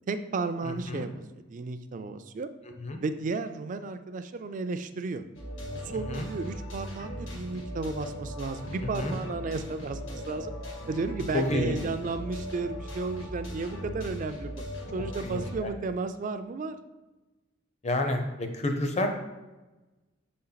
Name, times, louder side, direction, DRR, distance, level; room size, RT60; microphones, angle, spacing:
voice 1, 0.1-2.5 3.0-5.2 5.7-10.5 10.9-14.5 14.9-16.8, right 3 dB, 40° right, 10 dB, 0.3 m, -33 dB
voice 2, 0.6-1.1 2.8-3.0 5.9-6.3 8.8-9.2 11.3-11.8 15.2-15.7 17.8-19.1, left 1 dB, 35° left, 5 dB, 0.6 m, -30 dB
sound 1, 5.3-15.6, equal, 80° left, 1.4 m, -39 dB
6.2 x 4.3 x 3.9 m, 1.1 s
head